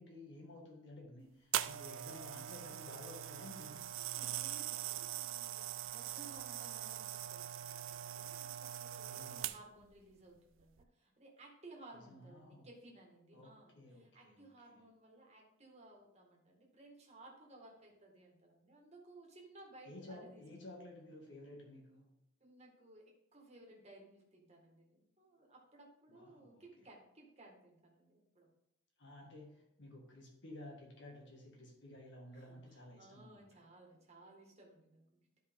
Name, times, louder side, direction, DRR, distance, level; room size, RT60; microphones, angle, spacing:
voice 1, 0.0-3.8 8.9-9.5 11.9-12.7 13.3-14.8 19.9-22.1 26.1-26.6 29.0-33.5, left 1 dB, 60° left, 0 dB, 1.9 m, -54 dB
sound 1, 1.5-9.9 10.6-10.8, right 12 dB, 75° right, 0.4 m, -42 dB
voice 2, 3.5-20.4 22.4-28.5 32.3-35.4, right 2 dB, 35° right, -1 dB, 1.8 m, -59 dB
11.5 x 5.1 x 3.7 m, 0.81 s
head